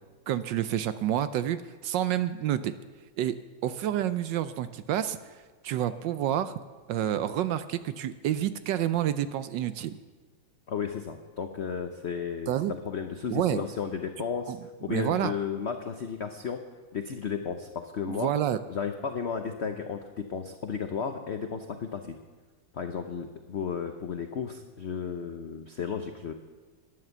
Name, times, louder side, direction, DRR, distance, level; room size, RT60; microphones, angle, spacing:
voice 1, 0.3-1.6 1.8-2.7 3.2-3.3 3.6-5.2 5.6-6.5 6.9-10.0 12.5-12.7 13.3-13.6 14.5-14.6 14.9-15.3 18.1-18.6, right 11 dB, 75° right, 12 dB, 1.2 m, -28 dB
voice 2, 10.7-14.5 14.8-16.6 16.9-18.3 18.7-22.2 22.7-26.3, left 6 dB, 90° left, 6 dB, 0.5 m, -34 dB
11.5 x 10.5 x 6.9 m, 1.4 s
omnidirectional pair, 2.2 m